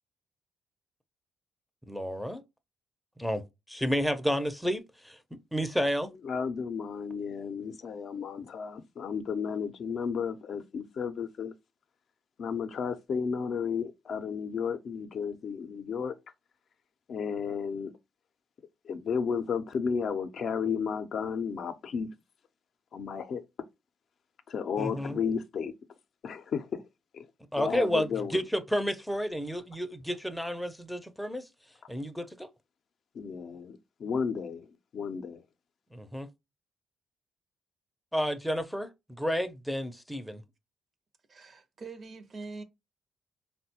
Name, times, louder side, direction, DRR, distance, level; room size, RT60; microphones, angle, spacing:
voice 1, 1.9-2.4 3.2-3.4 3.7-5.2 5.5-6.1 24.8-25.2 27.5-31.4 31.9-32.5 35.9-36.3 38.1-38.9 39.2-40.4, equal, ahead, 0.5 m, -31 dB
voice 2, 6.2-11.5 12.4-16.1 17.1-17.9 18.8-22.1 22.9-23.4 24.5-25.7 26.2-26.8 27.1-27.3 27.6-28.4 33.1-34.7 34.9-35.4, left 6 dB, 60° left, 0.4 m, -33 dB
voice 3, 41.3-42.6, right 3 dB, 45° right, 0.5 m, -43 dB
3.8 x 2.1 x 2.8 m
cardioid pair, 90°, 0 cm